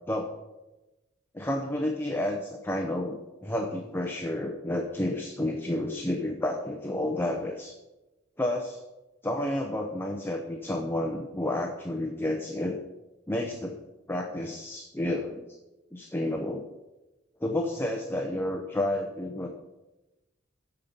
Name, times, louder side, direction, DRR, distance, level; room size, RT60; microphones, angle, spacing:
voice 1, 0.1-0.4 1.3-7.7 8.4-8.8 9.2-12.8 13.3-13.8 14.1-15.4 15.9-16.7 17.4-19.5, left 1 dB, 10° left, 3 dB, 0.8 m, -30 dB
14.5 x 5.5 x 5.3 m, 1.0 s
head